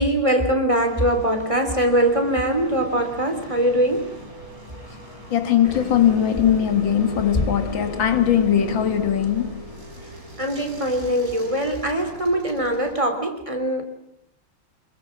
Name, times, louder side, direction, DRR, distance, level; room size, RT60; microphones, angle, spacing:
voice 1, 0.0-4.2 10.4-13.9, right 1 dB, 15° right, 3.5 m, -22 dB
sound 1, 0.8-13.0, right 1 dB, 40° right, 5.7 m, -44 dB
sound 2, 3.5-12.5, right 1 dB, 80° right, 5.7 m, -45 dB
voice 2, 5.3-9.6, left 9 dB, 70° left, 2.3 m, -20 dB
sound 3, 5.6-10.3, left 3 dB, 25° left, 0.9 m, -32 dB
26.5 x 23.0 x 7.4 m
omnidirectional pair, 2.2 m